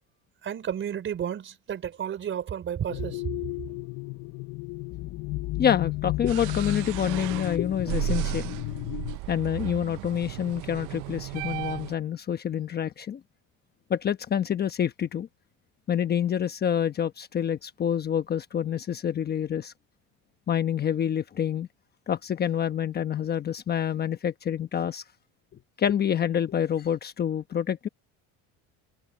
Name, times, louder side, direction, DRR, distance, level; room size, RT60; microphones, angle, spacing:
voice 1, 0.4-3.2, right 9 dB, 35° right, 4.4 m, -32 dB
sound 1, 2.9-9.2, left 20 dB, 50° left, 0.7 m, -33 dB
voice 2, 5.6-8.5 9.3-13.2 13.9-15.3 15.9-19.7 20.5-21.7 22.1-25.0 25.8-27.9, left 9 dB, 30° left, 1.0 m, -27 dB
sound 2, 6.3-11.9, right 20 dB, 65° right, 0.8 m, -34 dB
cardioid pair, 130°, 33 cm